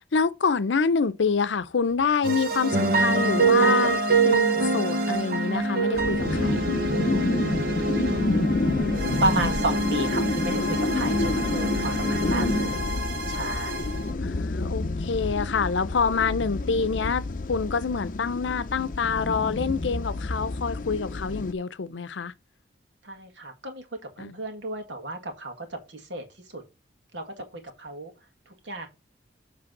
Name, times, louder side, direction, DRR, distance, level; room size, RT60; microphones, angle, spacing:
voice 1, 0.1-6.6 11.7-12.2 14.2-22.3 24.2-24.4, left 5 dB, 90° left, 0.6 m, -27 dB
sound 1, 2.2-14.1, right 3 dB, 55° right, 1.1 m, -25 dB
sound 2, 5.9-21.5, left 2 dB, 50° left, 0.5 m, -29 dB
voice 2, 8.0-8.5 9.2-12.7 13.3-13.9 23.0-23.9 24.2-26.2 26.5-26.6 27.1-28.1 28.6-28.9, right 2 dB, 80° right, 1.7 m, -32 dB
7.7 x 3.4 x 6.0 m
head